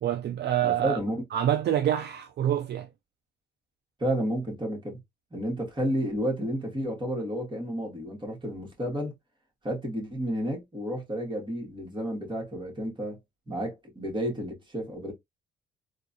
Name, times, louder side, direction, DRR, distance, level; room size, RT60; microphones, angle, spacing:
voice 1, 0.0-1.0 1.3-2.9, right 11 dB, 60° right, 0.5 m, -26 dB
voice 2, 0.6-1.2 4.0-5.0 5.3-9.1 9.6-13.2 13.5-15.1, equal, 25° right, 2.0 m, -31 dB
3.6 x 2.5 x 2.7 m
cardioid pair, 90°, 20 cm